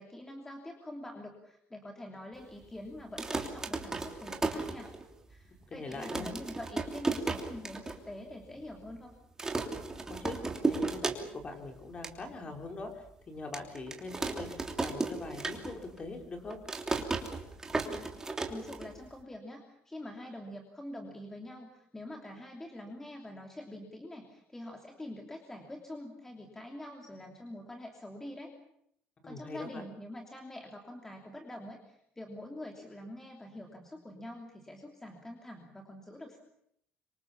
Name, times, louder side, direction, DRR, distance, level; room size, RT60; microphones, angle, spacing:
voice 1, 0.0-4.9 5.3-9.1 17.8-18.1 18.5-28.5 29.2-36.4, left 1 dB, 10° left, 2 dB, 3.1 m, -45 dB
sound 1, 3.0-5.3 5.6-5.7 5.9-8.0 8.3-8.4 8.6-9.0 9.4-11.5 11.8-12.2 12.7-12.8 13.5-16.0 16.2-19.2, right 3 dB, 15° right, 3.1 m, -34 dB
voice 2, 5.7-6.3 10.1-10.4 10.6-12.9 13.3-14.5 14.8-16.6 29.2-29.8, left 3 dB, 25° left, 4 dB, 4.7 m, -42 dB
26.0 x 25.0 x 7.2 m, 0.73 s
cardioid pair, 145°, 4 cm